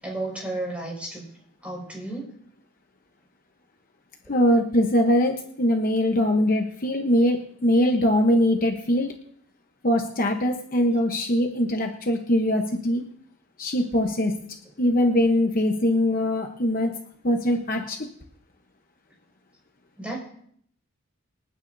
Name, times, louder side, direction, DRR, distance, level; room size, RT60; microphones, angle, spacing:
voice 1, 0.0-1.3 1.6-2.3 20.0-20.2, right 2 dB, 5° right, -2 dB, 5.3 m, -32 dB
voice 2, 4.3-9.1 9.8-13.0 13.6-14.3 14.8-16.9 17.2-18.0, left 1 dB, 40° left, 3 dB, 0.9 m, -22 dB
26.5 x 9.4 x 2.7 m, 0.66 s
head